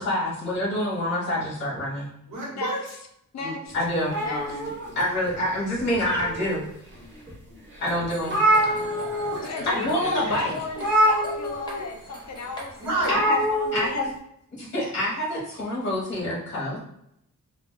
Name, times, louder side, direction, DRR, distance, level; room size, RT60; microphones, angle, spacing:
voice 1, 0.0-2.1 3.7-4.1 4.9-6.6 7.8-8.5 8.7-8.8 9.7-10.5 13.1-13.4 13.7-14.1 14.5-16.8, left 1 dB, 35° left, -5 dB, 0.9 m, -26 dB
voice 2, 2.3-2.8 3.4-3.5 4.2-4.9 6.3-6.6 7.1-7.7 8.6-9.9 10.2-10.5 12.8-13.1, right 2 dB, 60° right, -4 dB, 1.2 m, -33 dB
voice 3, 3.3-3.7 4.2-4.7 9.4-13.2 13.5-14.0, left 3 dB, 55° left, 3 dB, 0.5 m, -35 dB
sound 1, 4.1-5.3 5.8-6.7 7.3-7.4 7.7-7.8 8.0-9.4 9.6-9.9 10.8-11.8 13.0-13.9, right 1 dB, 35° right, 0.8 m, -24 dB
sound 2, 7.8-13.2, equal, 15° left, 0.6 m, -41 dB
2.3 x 2.2 x 3.6 m, 0.75 s
wide cardioid pair, 175°, 33 cm